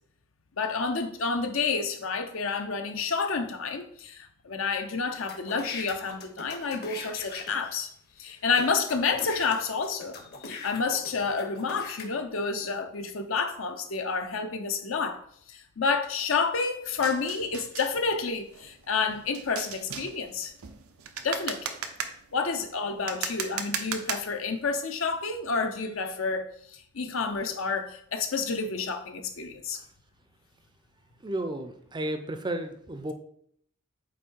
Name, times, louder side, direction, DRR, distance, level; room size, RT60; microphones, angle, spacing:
voice 1, 0.6-7.9 8.2-15.2 15.5-20.5 21.2-21.8 22.3-29.8, left 4 dB, 65° left, 6 dB, 0.8 m, -29 dB
sound 1, 5.2-7.7 8.3-8.4 8.6-12.1, left 4 dB, 50° left, 1.1 m, -41 dB
sound 2, 16.9-24.6, right 7 dB, 85° right, 0.7 m, -38 dB
voice 2, 31.2-33.1, right 1 dB, 20° right, 7 dB, 0.5 m, -33 dB
8.1 x 2.7 x 4.5 m, 0.66 s
head